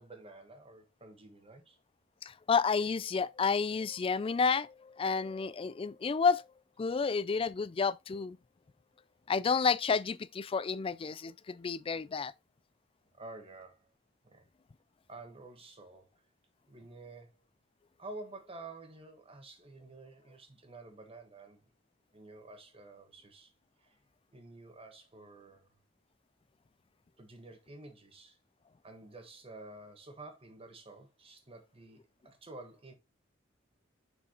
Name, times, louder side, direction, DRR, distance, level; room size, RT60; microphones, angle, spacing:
voice 1, 0.0-1.8 13.1-13.9 14.2-14.5 15.1-16.1 16.7-17.4 18.0-21.6 22.1-23.5 23.8-24.0 24.3-25.7 27.2-28.4 28.8-32.9, right 2 dB, 30° right, 1.4 m, -50 dB
voice 2, 2.2-6.4 6.8-8.4 9.3-12.3, left 5 dB, 30° left, 0.3 m, -30 dB
6.5 x 5.7 x 2.9 m
head